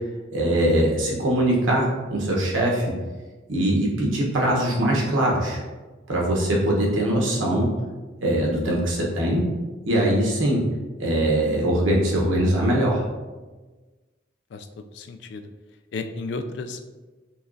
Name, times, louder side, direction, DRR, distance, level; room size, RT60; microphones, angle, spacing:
voice 1, 0.3-2.9 3.5-5.6 6.1-7.7 8.2-9.5 9.9-10.6 11.0-13.0, right 1 dB, 90° right, -2 dB, 1.0 m, -22 dB
voice 2, 14.5-15.5 15.9-16.9, left 3 dB, 65° left, 7 dB, 0.3 m, -33 dB
5.6 x 2.3 x 2.6 m, 1.3 s
head